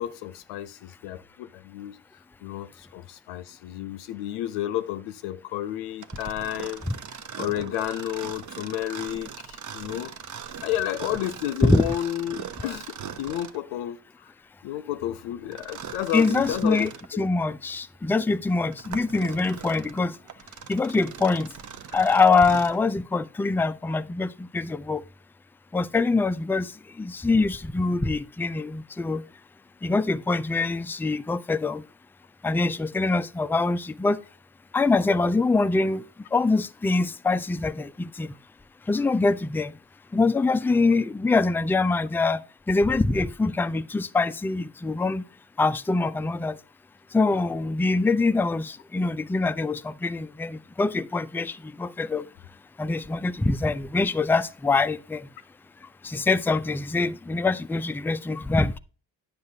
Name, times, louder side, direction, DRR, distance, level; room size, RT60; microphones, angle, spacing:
voice 1, 0.0-2.0 2.4-6.8 7.4-10.1 10.6-14.3 14.6-17.3, left 12 dB, 80° left, 0.7 m, -31 dB
Mechanisms, 6.0-13.7 15.5-17.1 17.7-17.8 18.5-22.8, right 7 dB, 35° right, 0.8 m, -40 dB
voice 2, 16.1-16.9 17.2-20.1 20.7-21.5 21.9-25.0 25.7-26.7 27.0-29.2 29.8-31.8 32.4-34.2 34.7-36.0 36.3-38.3 38.9-39.7 40.1-42.4 42.7-45.2 45.6-46.6 47.1-52.3 52.8-55.3 56.0-58.8, left 3 dB, 5° left, 0.3 m, -24 dB
9.4 x 6.8 x 2.7 m
hypercardioid pair, 55°, 49 cm